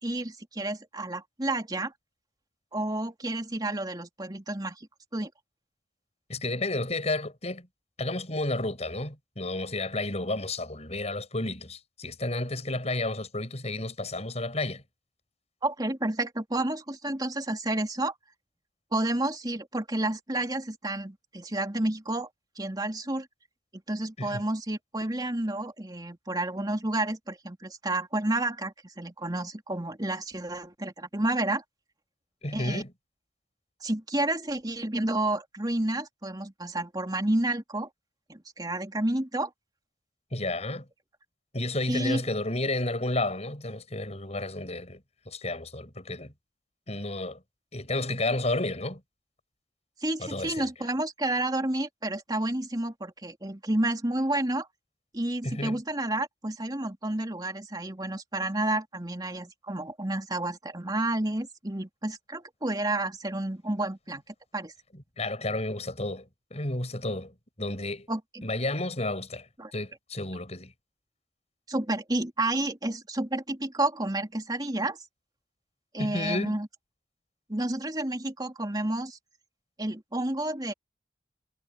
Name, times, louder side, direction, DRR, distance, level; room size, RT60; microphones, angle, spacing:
voice 1, 0.0-1.9 2.7-4.9 5.1-5.3 15.6-18.1 18.9-22.3 22.6-23.3 23.9-31.6 32.5-32.8 33.8-37.9 38.3-39.5 41.9-42.2 50.0-54.7 55.1-64.2 64.5-64.7 68.1-68.4 69.6-69.7 71.7-75.0 75.9-76.7 77.5-79.2 79.8-80.7, right 1 dB, 25° right, 3.0 m, -30 dB
voice 2, 6.3-7.7 8.0-14.8 24.2-24.4 32.4-32.9 40.3-40.8 41.5-46.3 46.9-47.4 47.7-49.0 50.2-50.6 55.4-55.8 64.9-66.3 66.5-68.1 68.4-69.5 69.7-70.7 76.0-76.6, left 2 dB, 40° left, 7.8 m, -31 dB
head